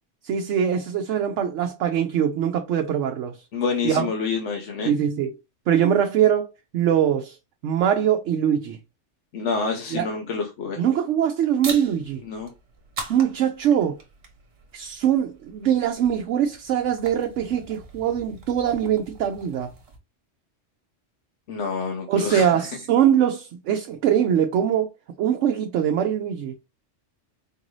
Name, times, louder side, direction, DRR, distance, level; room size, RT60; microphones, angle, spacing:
voice 1, 0.2-3.4 3.8-4.1 4.8-5.3 5.7-6.5 6.7-7.4 7.6-8.8 9.9-10.1 10.8-12.2 13.1-14.0 14.7-19.7 22.1-24.9 25.2-26.5, right 9 dB, 75° right, 0.9 m, -22 dB
voice 2, 3.5-4.9 9.3-10.9 12.2-12.5 21.5-22.5, left 5 dB, 70° left, 1.1 m, -28 dB
sound 1, 11.6-20.0, right 3 dB, 55° right, 1.2 m, -41 dB
4.5 x 2.6 x 3.1 m
omnidirectional pair, 1.3 m